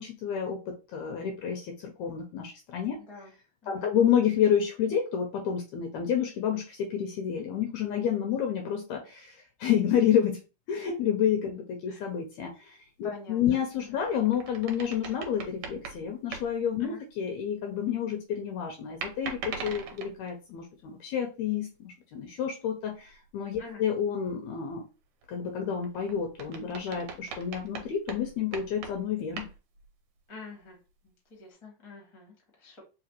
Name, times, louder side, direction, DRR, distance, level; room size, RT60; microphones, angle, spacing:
voice 1, 0.0-3.0 3.7-10.4 10.7-24.8 25.3-29.5, left 8 dB, 80° left, 2 dB, 1.7 m, -29 dB
voice 2, 3.0-3.3 3.6-3.9 11.9-12.0 13.0-14.0 16.8-17.0 23.6-23.8 30.3-30.8 31.0-32.8, left 3 dB, 20° left, -1 dB, 0.7 m, -46 dB
sound 1, 13.7-16.6 19.0-20.3 22.9-23.3 23.6-23.7 25.2-29.9, right 5 dB, 75° right, 1.9 m, -41 dB
4.9 x 3.1 x 2.9 m, 0.31 s
omnidirectional pair, 3.8 m